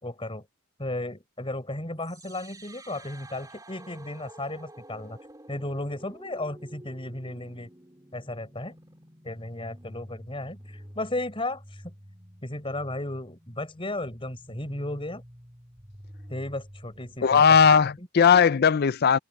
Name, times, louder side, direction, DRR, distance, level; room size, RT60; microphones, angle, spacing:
voice 1, 0.0-0.5 0.8-5.2 5.5-7.7 8.1-8.7 9.2-11.9 12.4-15.2 16.3-17.4 18.0-18.1, left 1 dB, 25° left, 4.3 m, -34 dB
sound 1, 2.0-18.0, right 1 dB, 15° right, 3.6 m, -49 dB
voice 2, 17.2-19.2, left 6 dB, 45° left, 0.4 m, -18 dB
head